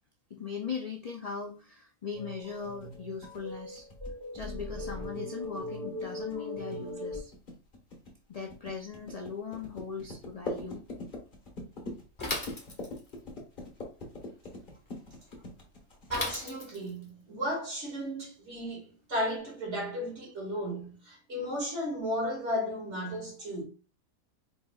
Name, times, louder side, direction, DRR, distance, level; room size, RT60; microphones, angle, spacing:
voice 1, 0.3-3.9 4.3-7.3 8.3-10.8, left 5 dB, 60° left, 0.4 m, -39 dB
sound 1, 2.1-7.2, left 1 dB, 20° right, 2.2 m, -40 dB
sound 2, 2.6-16.4, left 2 dB, 40° left, 1.4 m, -43 dB
Bicycle / Mechanisms, 12.2-13.2 16.1-17.0, left 1 dB, 20° left, 1.3 m, -36 dB
voice 2, 16.1-23.6, equal, 55° right, 2.3 m, -34 dB
4.5 x 4.2 x 2.3 m
omnidirectional pair, 1.4 m